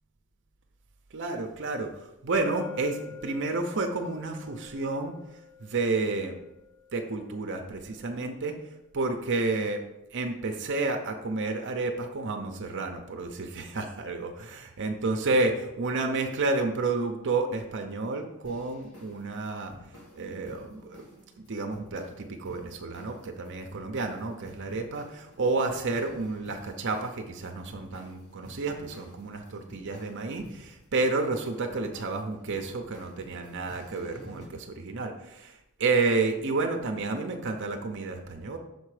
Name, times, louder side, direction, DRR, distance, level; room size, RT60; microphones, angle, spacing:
voice 1, 1.1-5.2 5.6-6.4 6.9-8.6 8.9-9.8 10.1-19.7 20.1-21.0 21.4-38.6, right 3 dB, 55° right, 4 dB, 0.6 m, -30 dB
sound 1, 2.3-8.1, left 4 dB, 45° left, 1.2 m, -47 dB
sound 2, 18.4-34.5, left 1 dB, 75° left, 1.7 m, -52 dB
6.7 x 4.4 x 4.8 m, 0.92 s
head